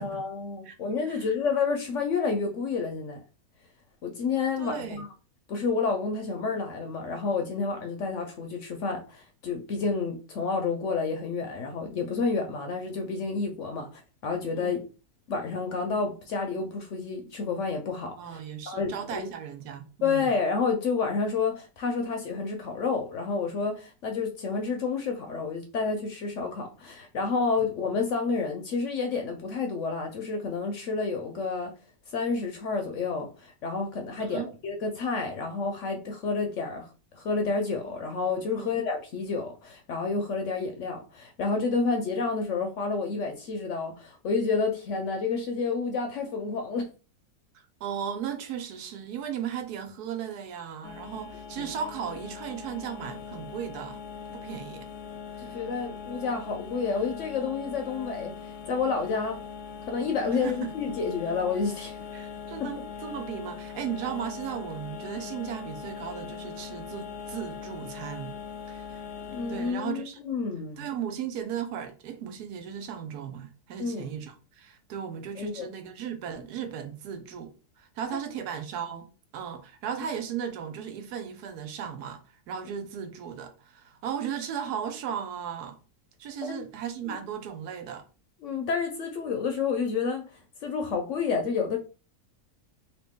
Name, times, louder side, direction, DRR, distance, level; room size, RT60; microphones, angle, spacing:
voice 1, 0.0-3.2 4.0-5.1 5.5-14.8 15.3-18.4 18.7-19.3 20.0-31.7 32.1-36.9 37.1-46.9 51.6-51.7 55.4-59.4 59.9-62.0 62.6-62.8 69.3-70.9 73.8-74.1 75.4-75.7 86.5-86.6 87.1-87.2 88.4-90.2 90.6-91.8, left 4 dB, 65° left, 0.8 m, -29 dB
voice 2, 4.6-5.0 14.5-14.8 18.2-20.3 34.2-34.5 38.6-38.7 47.5-54.0 54.3-54.9 55.4-55.6 60.3-60.8 62.1-68.4 68.7-69.0 69.5-70.2 70.8-85.8 86.2-88.0, right 8 dB, 80° right, 1.2 m, -36 dB
sound 1, 50.8-69.7, left 6 dB, 85° left, 1.1 m, -41 dB
2.9 x 2.8 x 3.5 m
omnidirectional pair, 1.7 m